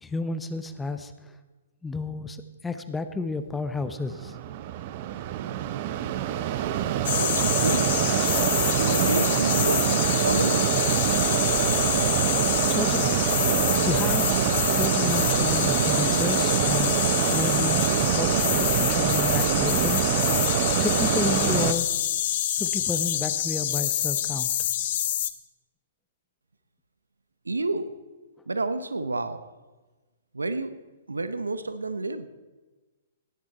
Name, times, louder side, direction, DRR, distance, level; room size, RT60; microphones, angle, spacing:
voice 1, 0.0-1.1 1.8-2.4 2.6-4.3 12.7-13.2 13.8-14.3 14.7-20.1 20.5-21.9 22.6-24.5, left 3 dB, 10° left, 10 dB, 0.7 m, -31 dB
Mechanisms, 3.7-21.7, right 11 dB, 40° right, 0.7 m, -25 dB
sound 1, 7.0-25.3, left 11 dB, 45° left, 0.7 m, -27 dB
voice 2, 7.1-8.0 8.7-10.8 27.4-27.9 28.5-29.4 30.3-30.7 31.1-32.3, right 2 dB, 80° right, 12 dB, 0.8 m, -29 dB
16.5 x 9.8 x 4.2 m, 1.2 s
figure-of-eight pair, 120°, 0 cm